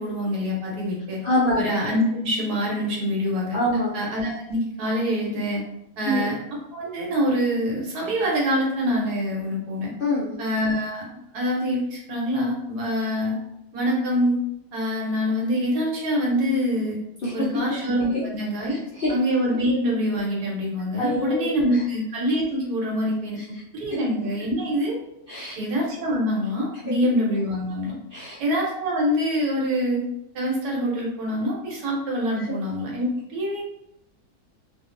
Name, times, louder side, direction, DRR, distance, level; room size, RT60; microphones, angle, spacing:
voice 1, 0.0-1.2 1.5-3.6 3.9-5.6 6.0-6.4 6.7-9.9 10.4-13.4 13.7-14.4 14.7-17.0 17.3-18.8 19.1-25.0 25.6-27.9 28.4-30.0 30.3-33.6, equal, 90° right, -3 dB, 1.4 m, -25 dB
voice 2, 1.2-1.6 3.5-3.9 6.1-6.3 10.0-10.3 17.2-17.3 18.7-19.1 21.0-21.8 25.3-25.6 28.1-28.4 32.4-32.5, left 1 dB, 55° left, -8 dB, 0.6 m, -25 dB
2.9 x 2.4 x 2.4 m, 0.81 s
omnidirectional pair, 1.6 m